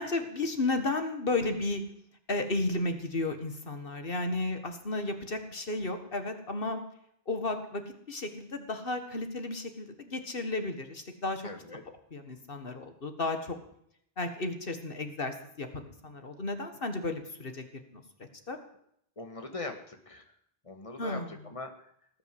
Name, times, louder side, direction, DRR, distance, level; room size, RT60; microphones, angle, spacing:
voice 1, 0.0-1.8 2.3-6.8 7.3-7.8 8.1-11.5 12.1-13.6 14.2-17.7 17.9-18.0 18.5-18.6 21.0-21.3, left 2 dB, 60° left, 7 dB, 2.0 m, -33 dB
voice 2, 11.4-11.8 19.2-20.3 20.6-21.9, left 2 dB, 30° left, 5 dB, 2.1 m, -41 dB
18.5 x 9.6 x 7.8 m, 0.70 s
omnidirectional pair, 1.0 m